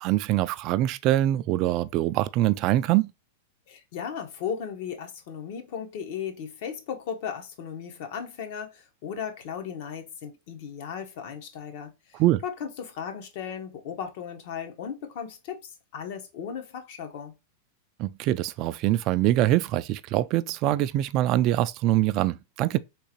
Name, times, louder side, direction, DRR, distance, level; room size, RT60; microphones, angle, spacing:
voice 1, 0.0-3.1 12.1-12.4 18.0-22.8, right 14 dB, 45° right, 0.3 m, -24 dB
voice 2, 3.7-17.3, left 7 dB, 60° left, 0.9 m, -36 dB
3.7 x 3.0 x 2.9 m
hypercardioid pair, 130°, 0 cm